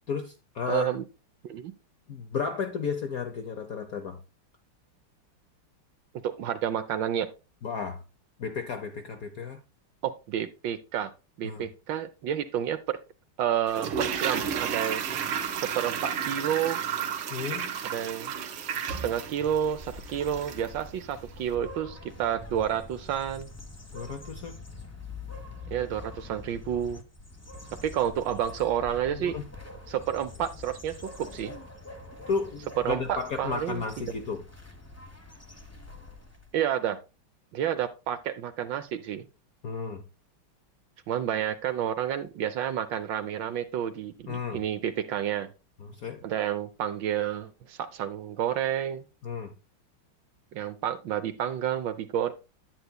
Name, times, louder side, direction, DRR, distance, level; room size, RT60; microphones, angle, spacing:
voice 1, 0.1-0.9 2.1-4.2 7.6-8.0 8.4-9.6 11.4-11.6 17.3-17.7 23.9-24.6 29.1-29.4 32.3-34.4 39.6-40.0 44.3-44.6 45.8-46.2 49.2-49.5, left 5 dB, 65° left, 0.9 m, -33 dB
voice 2, 0.7-1.0 1.5-1.7 6.2-7.3 10.0-11.1 11.4-13.0 13.4-15.0 15.6-16.8 17.9-18.3 18.8-23.5 25.7-27.0 27.8-29.4 29.9-31.5 32.8-33.8 36.5-37.0 37.5-39.3 41.1-45.5 46.2-49.0 50.5-52.3, right 10 dB, 70° right, 1.2 m, -30 dB
Toilet flush, 13.7-20.8 21.0-21.1, right 7 dB, 85° right, 1.9 m, -32 dB
sound 1, 19.3-36.6, left 3 dB, 25° left, 0.3 m, -45 dB
9.8 x 9.1 x 2.2 m
omnidirectional pair, 2.4 m